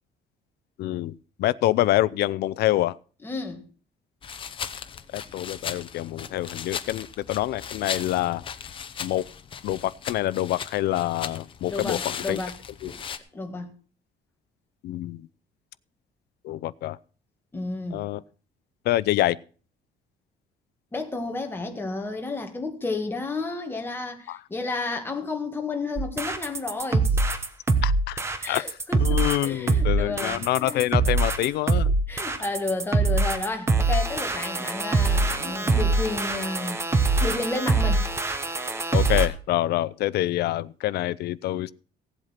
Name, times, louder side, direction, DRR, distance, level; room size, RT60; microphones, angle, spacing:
voice 1, 0.8-1.1 1.4-3.0 5.1-8.4 9.0-9.2 9.6-12.4 12.8-12.9 14.8-15.3 16.4-17.0 17.9-18.2 18.8-19.4 24.3-24.4 27.8-28.2 28.5-28.6 29.0-31.9 38.9-41.7, left 15 dB, 65° left, 0.6 m, -26 dB
voice 2, 3.2-3.6 11.7-12.6 12.8-13.0 13.3-13.7 17.5-18.1 20.9-27.2 28.4-30.9 32.1-36.8 37.2-38.0, left 3 dB, 10° left, 1.7 m, -31 dB
sound 1, 4.2-13.2, left 7 dB, 30° left, 0.9 m, -37 dB
sound 2, 26.0-39.3, right 3 dB, 15° right, 1.0 m, -23 dB
16.5 x 8.1 x 5.8 m
cardioid pair, 180°, 18 cm